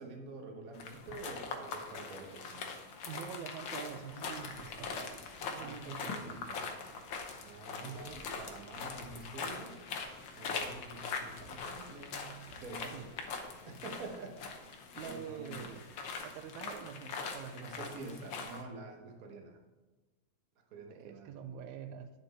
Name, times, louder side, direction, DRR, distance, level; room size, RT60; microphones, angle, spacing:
voice 1, 0.0-2.7 4.6-4.8 5.5-6.6 7.4-10.0 10.3-13.1 13.7-14.7 15.0-15.8 17.5-19.6 20.7-21.6, right 3 dB, 60° right, 2 dB, 0.9 m, -48 dB
sound 1, 0.7-18.6, left 5 dB, 70° left, 1.1 m, -42 dB
voice 2, 3.1-6.2 7.8-8.2 12.9-13.1 14.9-15.9 16.2-18.3 20.9-22.1, right 8 dB, 85° right, 10 dB, 2.0 m, -46 dB
sound 2, 4.1-14.1, equal, 30° right, 1.1 m, -60 dB
9.8 x 7.0 x 4.2 m, 1.3 s
omnidirectional pair, 3.4 m